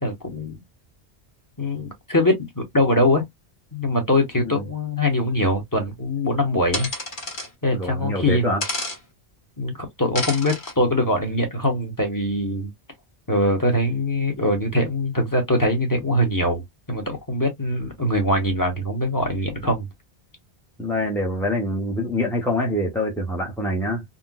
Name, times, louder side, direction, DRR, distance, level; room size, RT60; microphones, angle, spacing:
voice 1, 0.0-0.6 1.6-3.3 3.7-6.9 7.6-8.5 9.6-12.7 13.3-19.9, left 1 dB, 20° left, 0.9 m, -22 dB
sound 1, 6.7-7.5 8.6-9.0 10.1-10.7, left 2 dB, 50° left, 1.4 m, -29 dB
voice 2, 7.7-8.6 20.8-24.0, left 1 dB, 5° left, 0.5 m, -25 dB
3.9 x 2.1 x 2.2 m
omnidirectional pair, 1.1 m